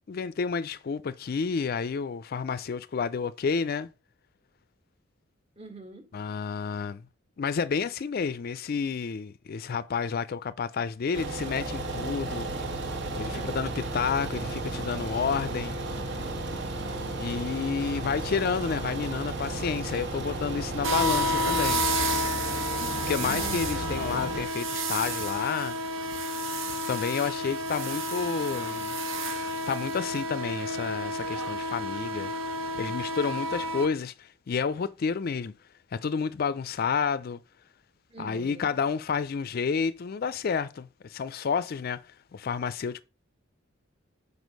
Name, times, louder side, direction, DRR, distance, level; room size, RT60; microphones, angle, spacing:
voice 1, 0.1-3.9 6.1-7.0 7.4-12.5 13.2-15.8 17.2-21.8 23.1-25.8 26.9-29.0 29.7-32.3 32.8-35.6 35.9-37.4 38.2-42.0 42.3-43.0, left 5 dB, 45° left, 0.4 m, -30 dB
voice 2, 5.6-6.0 13.3-13.7 16.8-17.1 22.8-23.2 38.1-38.7, right 3 dB, 30° right, 1.6 m, -45 dB
sound 1, 11.1-24.4, right 2 dB, 60° right, 1.7 m, -34 dB
sound 2, 20.8-33.9, equal, 75° right, 1.3 m, -30 dB
6.3 x 5.3 x 5.2 m
head